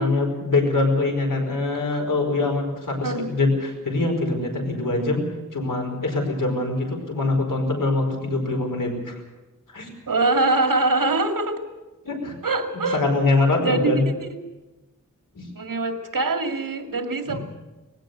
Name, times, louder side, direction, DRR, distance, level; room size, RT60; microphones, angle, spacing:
voice 1, 0.0-5.2 5.5-9.1 9.7-9.9 12.0-12.3 12.9-14.0 15.3-15.5 17.3-17.4, left 2 dB, 80° left, 3 dB, 5.0 m, -23 dB
voice 2, 3.0-3.3 10.1-11.6 12.4-13.0 13.6-13.9 14.2-14.4 15.5-17.4, right 2 dB, 85° right, 5 dB, 2.3 m, -23 dB
20.0 x 16.5 x 8.0 m, 1.1 s
wide cardioid pair, 85°, 32 cm